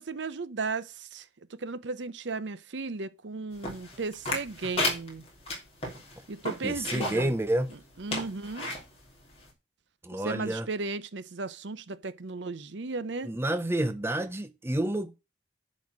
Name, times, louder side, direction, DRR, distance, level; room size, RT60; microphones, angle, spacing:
voice 1, 0.0-5.2 6.3-7.3 8.0-8.7 10.1-13.3, right 3 dB, 70° right, 0.7 m, -35 dB
sound 1, 3.6-7.3 7.7-7.8 8.1-8.8 9.4-9.5, left 1 dB, 30° left, 3.0 m, -32 dB
voice 2, 6.6-7.7 10.0-10.7 13.3-15.2, right 1 dB, 15° right, 0.5 m, -29 dB
10.5 x 4.3 x 6.3 m
head